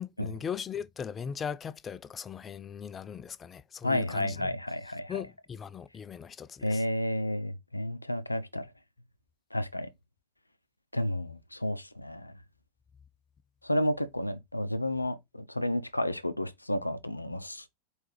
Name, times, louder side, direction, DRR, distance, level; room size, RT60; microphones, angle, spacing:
voice 1, 0.0-4.5 5.1-6.8, left 7 dB, 20° left, 0.3 m, -39 dB
voice 2, 3.8-5.1 6.6-8.7 9.5-9.9 10.9-12.3 13.6-17.7, left 1 dB, 85° left, 0.5 m, -31 dB
4.6 x 3.3 x 3.2 m
figure-of-eight pair, 90°, 0 cm